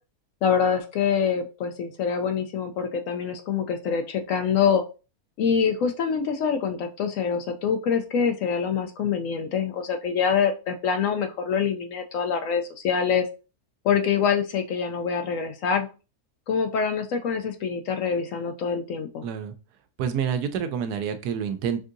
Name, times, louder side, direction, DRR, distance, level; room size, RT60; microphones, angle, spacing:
voice 1, 0.4-4.8 5.4-13.3 13.8-15.9 16.5-19.2, left 6 dB, 70° left, 6 dB, 0.8 m, -25 dB
voice 2, 19.2-19.5 20.0-21.8, right 7 dB, 85° right, 9 dB, 1.2 m, -28 dB
5.9 x 2.7 x 2.5 m, 0.32 s
omnidirectional pair, 1.7 m